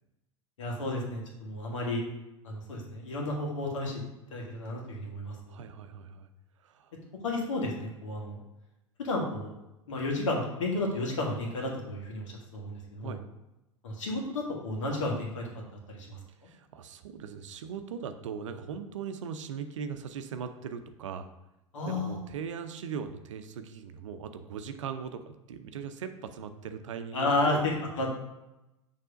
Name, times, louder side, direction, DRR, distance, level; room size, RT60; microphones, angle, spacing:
voice 1, 0.6-2.0 2.4-4.0 4.3-5.3 7.2-8.4 9.0-9.5 9.9-13.2 13.8-15.5 15.9-16.2 21.7-22.2 27.1-28.2, left 2 dB, 70° left, -1 dB, 1.8 m, -32 dB
voice 2, 5.5-6.3 6.6-6.9 13.0-13.2 16.5-21.3 21.8-27.7, right 7 dB, 70° right, 9 dB, 0.7 m, -39 dB
6.7 x 3.4 x 5.1 m, 0.94 s
figure-of-eight pair, 85°, 17 cm